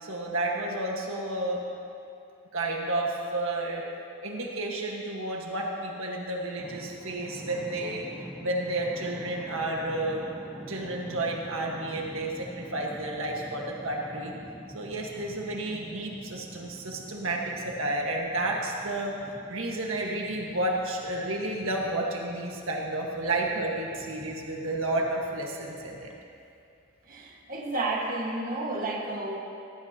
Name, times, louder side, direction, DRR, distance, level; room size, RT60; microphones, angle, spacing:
voice 1, 0.0-1.6 2.5-3.8 4.2-8.1 8.4-10.3 10.7-14.3 14.7-19.1 19.5-26.1, right 2 dB, 75° right, -1 dB, 1.6 m, -31 dB
sound 1, 6.6-26.3, equal, 5° right, 0.8 m, -46 dB
voice 2, 27.1-29.4, right 2 dB, 40° right, -2 dB, 1.7 m, -31 dB
18.0 x 15.5 x 2.9 m, 2.6 s
head